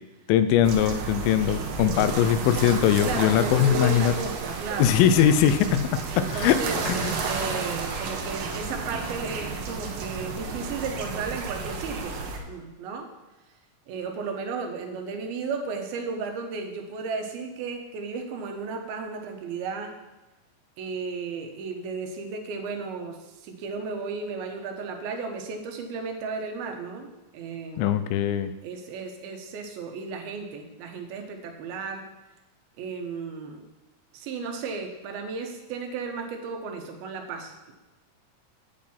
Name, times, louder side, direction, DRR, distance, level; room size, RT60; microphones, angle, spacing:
voice 1, 0.3-4.1 4.8-6.6 6.9-7.1 27.8-28.5, left 9 dB, 85° left, 11 dB, 2.4 m, -21 dB
sound 1, 0.6-12.4, right 5 dB, 75° right, 2.5 m, -32 dB
voice 2, 3.0-5.0 6.1-13.1 13.9-20.0 20.8-28.0 28.6-32.0 32.8-33.6 34.1-37.7, right 4 dB, 90° right, 4 dB, 2.9 m, -34 dB
8.4 x 8.0 x 4.3 m, 1.1 s
omnidirectional pair, 4.2 m